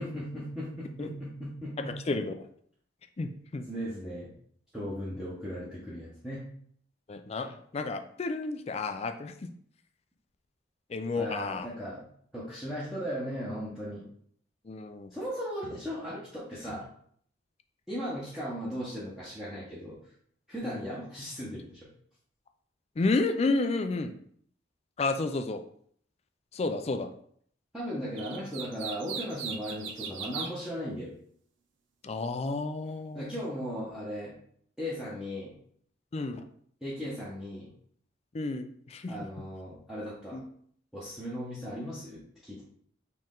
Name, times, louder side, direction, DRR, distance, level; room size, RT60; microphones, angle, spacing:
voice 1, 0.0-1.9 3.7-4.3 4.7-6.4 11.2-12.0 12.3-14.0 15.1-16.8 17.9-20.0 20.5-21.9 27.7-31.1 33.1-34.3 34.8-35.5 36.8-37.7 39.1-40.4 40.9-42.6, equal, 5° right, -9 dB, 0.9 m, -37 dB
voice 2, 1.9-2.5 3.2-3.7 7.1-9.5 10.9-11.7 14.6-15.1 20.6-20.8 23.0-24.2 25.0-25.6 26.5-27.1 32.0-33.4 36.1-36.4 38.3-39.1 40.3-40.4, left 3 dB, 35° left, 8 dB, 0.3 m, -31 dB
sound 1, 28.2-30.5, right 6 dB, 85° right, 0.6 m, -38 dB
4.3 x 3.1 x 3.7 m, 0.62 s
head